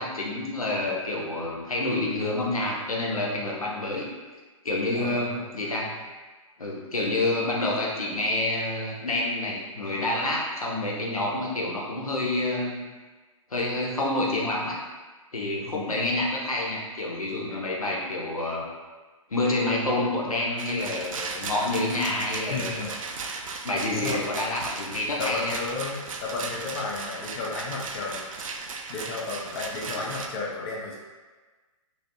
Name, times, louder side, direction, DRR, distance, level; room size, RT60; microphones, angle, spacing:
voice 1, 0.0-4.1 4.6-6.0 6.6-12.9 13.5-14.8 15.3-18.7 19.3-22.9 23.6-25.5 29.9-30.0, left 2 dB, 90° left, -3 dB, 0.8 m, -28 dB
voice 2, 4.9-5.4 15.7-15.9 22.5-22.9 23.9-24.2 25.2-28.2 28.9-31.0, left 3 dB, 40° left, -3 dB, 0.7 m, -33 dB
Rattle, 20.6-30.3, right 4 dB, 70° right, 0.4 m, -36 dB
3.1 x 2.7 x 2.7 m, 1.3 s
figure-of-eight pair, 125°, 18 cm